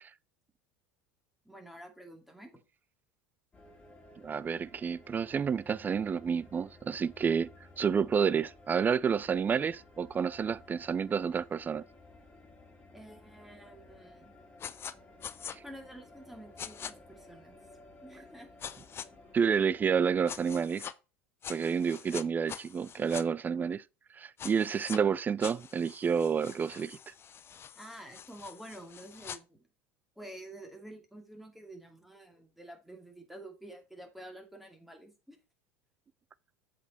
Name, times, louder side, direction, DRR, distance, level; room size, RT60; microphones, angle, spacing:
voice 1, 1.4-2.6 12.9-14.3 15.6-17.6 18.0-18.5 27.8-29.7 30.2-35.4, right 1 dB, 5° right, 2.5 m, -49 dB
sound 1, 3.5-20.5, left 2 dB, 15° left, 3.4 m, -56 dB
voice 2, 4.2-7.5 7.8-11.8 19.3-20.8 21.5-23.8 24.1-27.1, right 6 dB, 25° right, 0.4 m, -29 dB
sound 2, 14.6-14.9 15.2-15.6 16.6-16.9 18.6-19.1 20.3-20.9 21.4-23.2 24.4-25.0 25.4-29.4, left 8 dB, 35° left, 0.6 m, -44 dB
8.0 x 5.1 x 4.2 m
hypercardioid pair, 85°, 7 cm